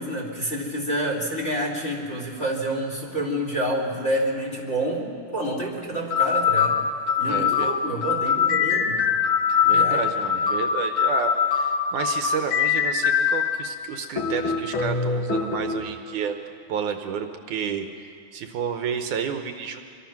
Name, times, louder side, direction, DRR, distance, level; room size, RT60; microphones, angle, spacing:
voice 1, 0.0-6.8 7.2-9.1 9.6-10.1, right 1 dB, 20° left, 1 dB, 2.5 m, -28 dB
sound 1, 5.4-5.6 6.1-13.6 14.2-15.8, left 7 dB, 55° left, 1.5 m, -23 dB
voice 2, 7.2-7.7 9.6-16.3 16.7-17.9 18.3-19.8, right 7 dB, 75° right, 6 dB, 2.2 m, -30 dB
25.0 x 24.5 x 5.9 m, 2.4 s
omnidirectional pair, 3.9 m